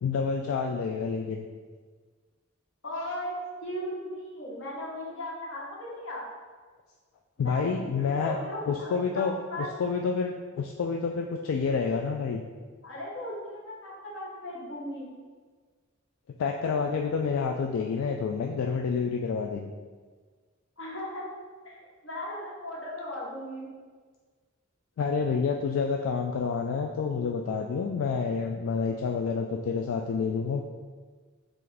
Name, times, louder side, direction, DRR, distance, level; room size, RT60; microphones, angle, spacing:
voice 1, 0.0-1.5 7.4-8.4 8.7-12.4 16.4-19.7 25.0-30.6, left 5 dB, 90° left, 2 dB, 0.3 m, -28 dB
voice 2, 2.8-6.2 7.4-9.7 12.8-15.1 20.8-21.3 21.6-23.7, left 1 dB, 70° left, -4 dB, 1.1 m, -37 dB
5.7 x 2.6 x 3.3 m, 1.5 s
head